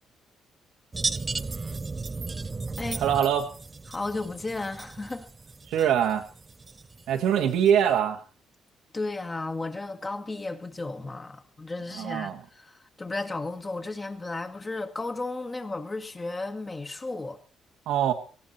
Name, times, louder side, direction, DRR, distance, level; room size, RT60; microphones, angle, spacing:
sound 1, 0.9-8.0, right 3 dB, 25° right, 0.6 m, -35 dB
voice 1, 3.0-3.5 5.7-6.3 7.1-8.2 11.9-12.4 17.9-18.1, right 9 dB, 85° right, 1.8 m, -23 dB
voice 2, 3.9-5.3 5.8-5.9 8.9-17.4, left 2 dB, 25° left, 1.8 m, -34 dB
18.5 x 14.5 x 4.3 m
cardioid pair, 90°, 0 cm